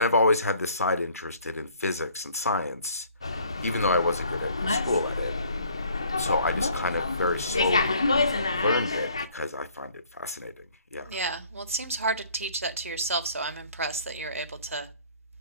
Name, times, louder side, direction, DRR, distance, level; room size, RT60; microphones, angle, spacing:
voice 1, 0.0-3.1 3.6-5.3 6.2-8.0 8.5-10.5 10.9-11.1, left 2 dB, 90° left, 0.9 m, -28 dB
Slam, 3.2-9.3, left 3 dB, 20° left, 0.4 m, -28 dB
voice 2, 11.1-14.9, right 2 dB, 65° right, 1.6 m, -31 dB
6.6 x 6.3 x 6.5 m
figure-of-eight pair, 175°, 8 cm